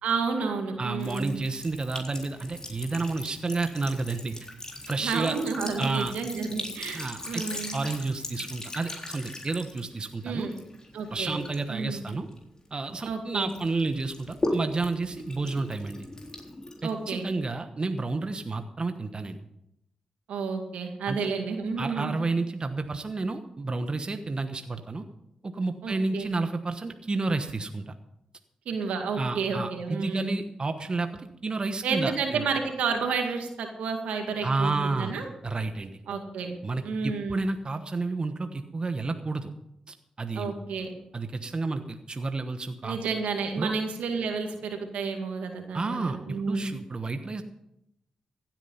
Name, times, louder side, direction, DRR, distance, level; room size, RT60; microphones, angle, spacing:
voice 1, 0.0-1.4 5.0-7.8 10.2-10.5 10.9-11.4 11.7-12.0 13.0-13.5 16.8-17.3 20.3-22.2 25.8-26.3 28.7-30.4 31.8-35.3 36.1-36.6 36.8-37.4 40.3-40.9 42.8-46.7, right 5 dB, 85° right, 4 dB, 2.2 m, -31 dB
voice 2, 0.8-4.5 4.9-5.4 5.8-6.1 6.9-7.4 7.7-10.5 11.1-12.3 12.7-16.1 16.8-19.4 21.1-21.3 21.8-25.0 25.4-28.0 29.2-32.4 34.4-35.1 35.4-36.0 36.6-39.5 39.9-40.5 41.1-43.0 43.6-43.7 45.7-47.4, right 3 dB, 40° right, 7 dB, 1.1 m, -31 dB
Sink (filling or washing) / Trickle dribble, 1.0-13.1 13.5-17.3, left 1 dB, 30° left, 3.8 m, -39 dB
15.5 x 9.1 x 5.6 m, 0.82 s
supercardioid pair, 45°, 2 cm